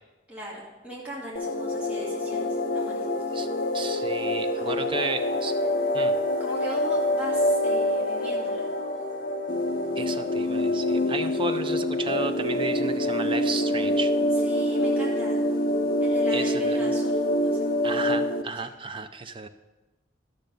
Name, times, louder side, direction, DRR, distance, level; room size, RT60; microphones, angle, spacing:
voice 1, 0.3-3.2 4.6-5.1 6.4-8.7 14.4-15.4 16.0-17.6, equal, 10° right, -7 dB, 2.2 m, -39 dB
sound 1, 1.4-18.4, left 1 dB, 50° left, 0.6 m, -26 dB
sound 2, 1.9-12.8, right 3 dB, 85° right, 1.4 m, -42 dB
voice 2, 3.7-5.5 5.9-6.1 10.0-14.1 16.3-16.9 17.8-19.5, right 3 dB, 25° right, 9 dB, 0.5 m, -33 dB
12.5 x 6.6 x 5.3 m, 1.1 s
head